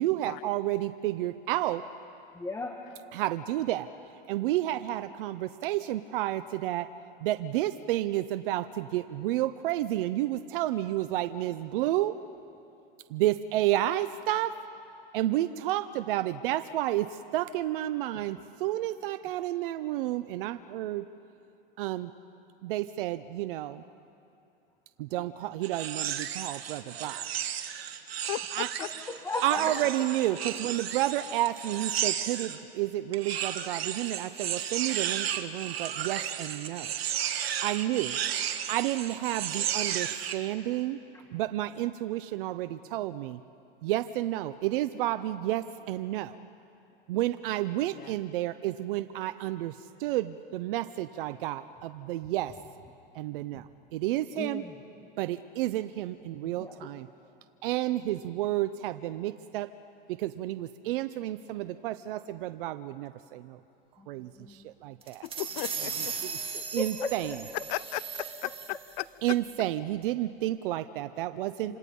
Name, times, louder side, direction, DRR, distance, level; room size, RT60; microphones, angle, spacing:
voice 1, 0.0-1.8 3.1-3.9 4.3-6.9 7.2-12.1 13.1-14.5 15.1-17.1 17.3-21.0 21.8-22.1 22.6-23.8 25.0-27.2 28.5-28.7 29.4-36.9 37.6-38.2 38.7-41.0 41.3-43.4 43.8-46.4 47.1-49.7 50.0-52.5 53.2-53.6 53.9-54.6 55.2-57.1 57.6-59.7 60.2-63.6 64.1-65.2 66.2-67.4 69.2-71.7, right 14 dB, 60° right, 11 dB, 0.8 m, -31 dB
voice 2, 2.3-2.8 18.1-18.2 25.2-25.3 28.8-29.7 54.4-54.7 56.4-56.9 64.0-64.1 64.4-64.6 66.8-67.4 71.7-71.8, left 2 dB, 10° left, 2 dB, 1.5 m, -36 dB
sound 1, 25.6-32.6 33.1-40.4, right 9 dB, 85° right, 1.7 m, -33 dB
voice 3, 28.2-28.9 47.9-48.1 65.2-66.1 67.7-68.0 68.4-69.4, left 19 dB, 50° left, 19 dB, 0.7 m, -36 dB
sound 2, 65.0-69.0, right 6 dB, 20° right, 2.2 m, -37 dB
27.0 x 26.5 x 5.5 m, 2.7 s
hypercardioid pair, 125°, 30 cm